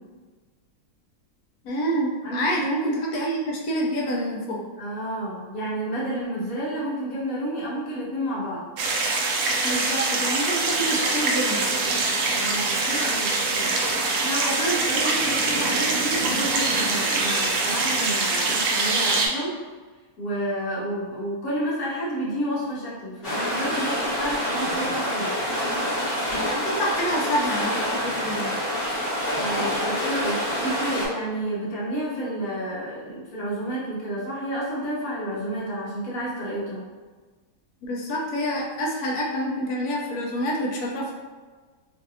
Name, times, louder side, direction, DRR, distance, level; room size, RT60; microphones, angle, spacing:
voice 1, 1.6-4.6 9.6-11.6 26.5-28.4 37.8-41.1, equal, 80° left, -2 dB, 1.1 m, -27 dB
voice 2, 4.8-8.6 12.3-19.5 20.2-25.3 29.4-36.8, right 1 dB, 65° left, -7 dB, 1.4 m, -30 dB
sound 1, 8.8-19.3, right 3 dB, 70° right, 0.8 m, -24 dB
sound 2, 23.2-31.1, equal, 35° left, 1.2 m, -27 dB
3.2 x 2.6 x 2.6 m, 1.4 s
omnidirectional pair, 1.6 m